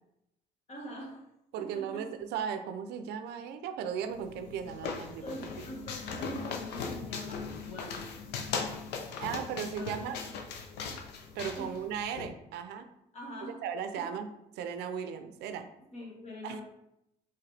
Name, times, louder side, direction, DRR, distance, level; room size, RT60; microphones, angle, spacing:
voice 1, 0.7-1.2 1.6-2.1 5.2-8.1 9.8-10.2 11.6-11.8 13.1-13.6 13.9-14.1 15.8-16.6, equal, 40° left, -1 dB, 1.5 m, -44 dB
voice 2, 1.5-5.7 9.2-10.2 11.3-12.9 13.6-14.3 14.6-15.7 16.4-16.6, right 8 dB, 80° right, 8 dB, 0.5 m, -36 dB
sound 1, 4.1-12.3, left 5 dB, 80° left, 0.6 m, -39 dB
4.7 x 3.2 x 3.3 m, 0.83 s
cardioid pair, 110°, 17 cm